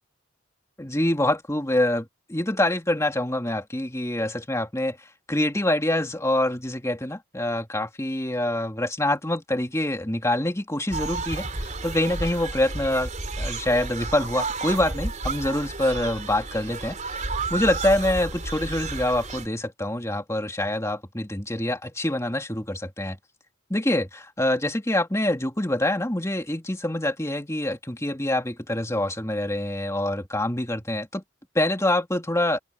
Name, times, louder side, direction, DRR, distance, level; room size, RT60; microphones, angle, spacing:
voice 1, 0.8-5.0 5.3-13.1 13.4-23.2 23.7-31.2 31.5-32.6, left 1 dB, 15° left, 2.5 m, -25 dB
sound 1, 10.9-19.5, right 3 dB, 35° right, 4.0 m, -32 dB
head